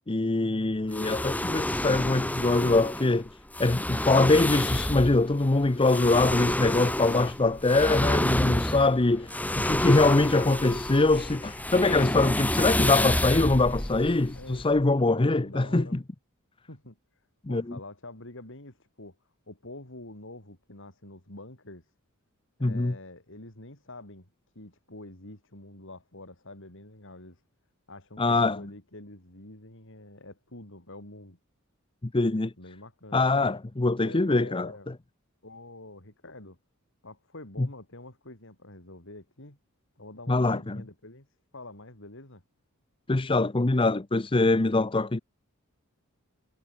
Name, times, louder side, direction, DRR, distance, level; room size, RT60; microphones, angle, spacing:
voice 1, 0.1-3.3 3.6-15.9 17.5-17.6 22.6-22.9 28.2-28.6 32.1-32.5 33.1-34.7 37.6-37.7 40.3-40.8 43.1-45.2, left 2 dB, 25° left, 0.7 m, -23 dB
sound 1, 0.9-14.8, left 1 dB, 5° left, 1.5 m, -29 dB
voice 2, 14.3-16.0 16.7-21.9 22.6-24.3 24.5-27.4 27.9-31.4 32.6-33.3 34.0-34.9 35.4-36.6 37.0-39.6 40.0-41.3 41.5-42.4, left 2 dB, 60° left, 4.3 m, -46 dB
head